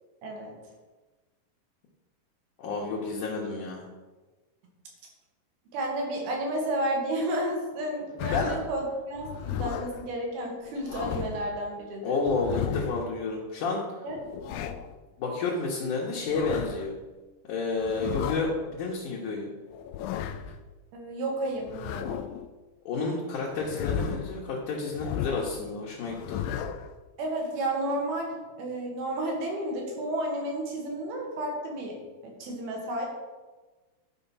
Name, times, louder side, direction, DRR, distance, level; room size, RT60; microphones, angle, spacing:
voice 1, 0.2-0.6 5.7-12.2 14.0-14.2 14.5-14.7 20.9-22.2 27.2-32.0 32.2-33.1, right 1 dB, 70° right, 0 dB, 3.7 m, -32 dB
voice 2, 2.6-3.9 8.3-8.6 12.0-13.8 15.2-16.9 17.5-19.5 22.9-26.4, left 3 dB, 65° left, -4 dB, 2.3 m, -30 dB
sound 1, 8.2-8.7 9.2-10.0 10.6-11.5 12.2-13.1 14.1-14.9 16.1-16.9 17.8-18.5 19.7-20.6 21.6-22.5 23.5-24.4 25.0-25.6 26.1-26.9, left 9 dB, 85° left, 2.0 m, -34 dB
11.5 x 5.0 x 5.6 m, 1.3 s
omnidirectional pair, 4.6 m